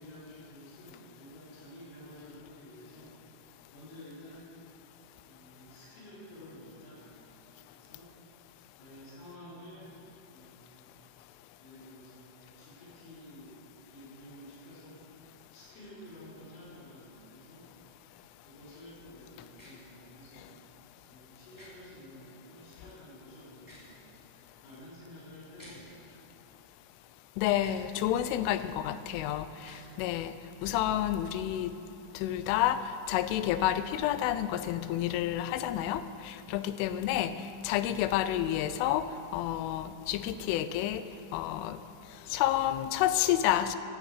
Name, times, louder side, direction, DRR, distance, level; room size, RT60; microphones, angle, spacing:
voice 1, 0.0-3.2 3.7-4.5 5.2-7.3 7.7-8.1 8.8-9.9 10.3-10.9 11.6-15.1 15.5-17.7 18.4-20.6 21.1-24.0 24.6-26.0, equal, 70° left, -8 dB, 6.4 m, -51 dB
sound 1, 19.5-19.7 21.5-21.7 23.5-23.9 25.5-25.8 27.6-27.8 29.6-29.8, left 1 dB, 5° left, 2.4 m, -52 dB
voice 2, 27.4-30.3 30.6-31.8 32.1-41.0 41.3-41.8 42.3-43.8, left 12 dB, 85° left, 13 dB, 3.0 m, -30 dB
16.0 x 14.5 x 4.9 m, 2.8 s
omnidirectional pair, 5.8 m